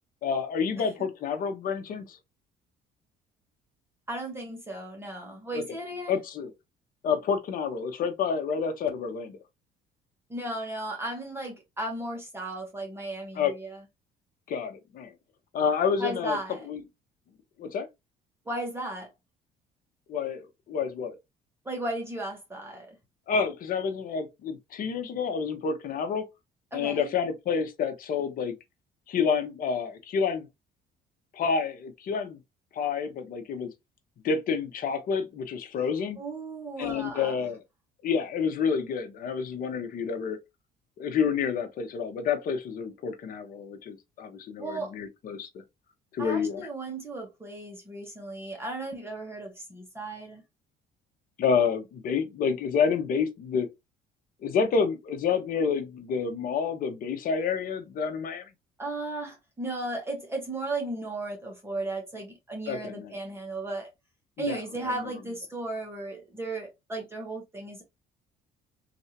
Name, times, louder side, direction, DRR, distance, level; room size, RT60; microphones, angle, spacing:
voice 1, 0.2-2.2 5.5-5.6 6.1-6.5 7.0-9.4 13.3-13.5 14.5-15.1 15.5-16.4 16.7-16.8 17.6-17.9 20.1-21.2 23.3-26.2 26.7-28.5 29.1-30.5 31.3-32.4 32.7-33.7 34.2-36.2 36.8-37.6 38.0-40.4 41.0-45.5 46.1-46.7 51.4-53.7 54.4-58.5 62.7-63.1 64.4-64.9, left 6 dB, 55° left, 0.9 m, -29 dB
voice 2, 4.1-6.2 10.3-13.8 16.0-16.6 18.5-19.1 21.6-23.0 26.7-27.1 36.2-37.3 44.6-44.9 46.2-50.4 58.8-63.9 64.4-67.8, right 2 dB, 15° right, 1.2 m, -35 dB
3.3 x 2.6 x 2.8 m
cardioid pair, 110°, 17 cm